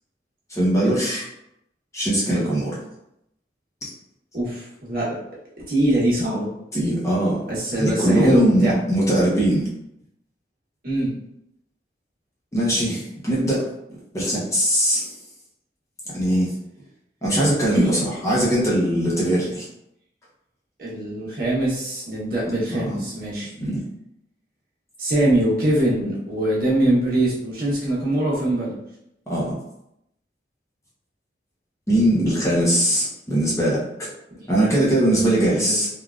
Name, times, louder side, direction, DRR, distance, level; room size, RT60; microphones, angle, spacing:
voice 1, 0.5-1.2 1.9-2.8 6.7-7.4 7.8-9.7 12.5-13.6 14.1-15.1 16.1-16.5 17.2-19.7 22.7-22.9 23.6-23.8 29.3-29.5 31.9-34.1 34.5-35.9, right 1 dB, 15° left, -6 dB, 0.7 m, -21 dB
voice 2, 4.3-5.2 5.7-6.5 7.5-8.8 10.8-11.1 17.7-18.1 20.8-23.5 25.0-28.8 35.1-35.8, right 1 dB, 55° right, -6 dB, 1.0 m, -23 dB
3.4 x 2.3 x 2.4 m, 0.80 s
head